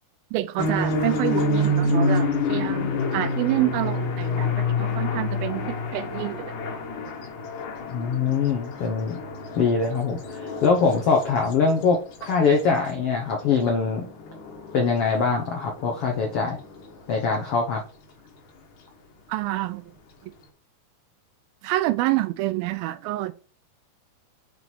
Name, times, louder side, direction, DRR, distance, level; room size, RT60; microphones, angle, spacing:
voice 1, 0.3-6.6 19.3-19.9 21.6-23.4, right 17 dB, 85° right, 2.4 m, -27 dB
sound 1, 0.6-17.3, left 2 dB, 60° left, 2.6 m, -28 dB
voice 2, 7.9-9.2 9.6-14.1 14.7-16.6 17.1-17.8, left 5 dB, 80° left, 1.3 m, -23 dB
7.8 x 4.1 x 4.5 m
omnidirectional pair, 4.3 m